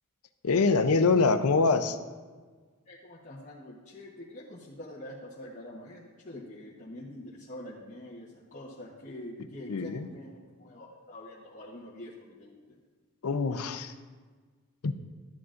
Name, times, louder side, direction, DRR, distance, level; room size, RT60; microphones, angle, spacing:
voice 1, 0.4-2.0 9.7-10.1 13.2-13.9 14.8-14.9, left 4 dB, 80° left, 10 dB, 0.6 m, -24 dB
voice 2, 2.9-10.3 10.6-12.8, left 1 dB, 35° left, -6 dB, 0.9 m, -45 dB
12.5 x 9.5 x 2.5 m, 1.4 s
head